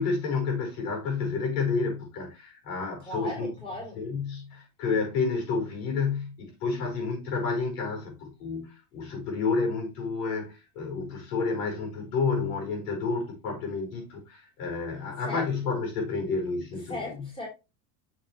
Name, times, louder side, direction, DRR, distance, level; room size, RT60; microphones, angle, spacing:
voice 1, 0.0-3.5 4.0-16.9, left 4 dB, 85° left, 5.2 m, -30 dB
voice 2, 3.0-4.0 15.2-15.7 16.9-17.5, left 1 dB, 10° left, 3.8 m, -37 dB
7.7 x 6.8 x 3.1 m
cardioid pair, 155°, 45 cm